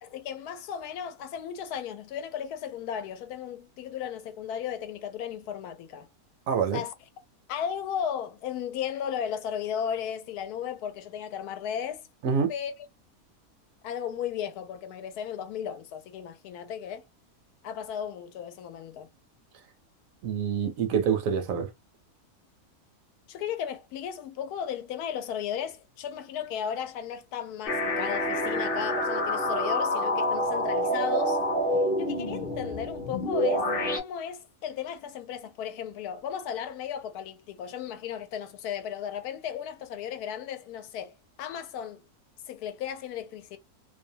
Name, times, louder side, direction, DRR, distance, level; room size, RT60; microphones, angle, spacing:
voice 1, 0.0-6.1 6.7-6.9 7.5-12.1 12.5-12.7 13.8-17.0 17.6-19.1 23.3-31.4 32.0-42.0 42.5-43.6, left 8 dB, 90° left, 1.1 m, -35 dB
voice 2, 6.5-6.8 12.2-12.5 20.2-21.7, right 7 dB, 70° right, 0.9 m, -26 dB
sound 1, 27.7-34.0, left 1 dB, 45° left, 0.8 m, -27 dB
2.6 x 2.1 x 2.6 m
omnidirectional pair, 1.6 m